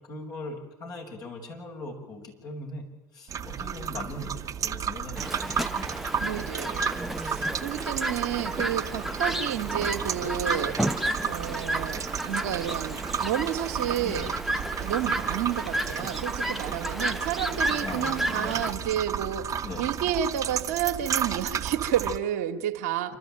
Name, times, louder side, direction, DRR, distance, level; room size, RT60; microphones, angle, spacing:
voice 1, 0.1-2.9 3.1-5.9 14.0-14.3 17.7-18.6 19.6-19.9 23.1-23.2, left 2 dB, 50° left, 0 dB, 6.3 m, -40 dB
sound 1, 3.3-22.2, right 8 dB, 45° right, 1.3 m, -33 dB
Chirp tweet, 5.2-18.7, right 1 dB, 5° right, 0.9 m, -32 dB
voice 2, 6.2-14.3 14.8-23.1, right 10 dB, 75° right, 5 dB, 1.5 m, -31 dB
27.5 x 13.0 x 8.9 m, 0.97 s
hypercardioid pair, 65°, 8 cm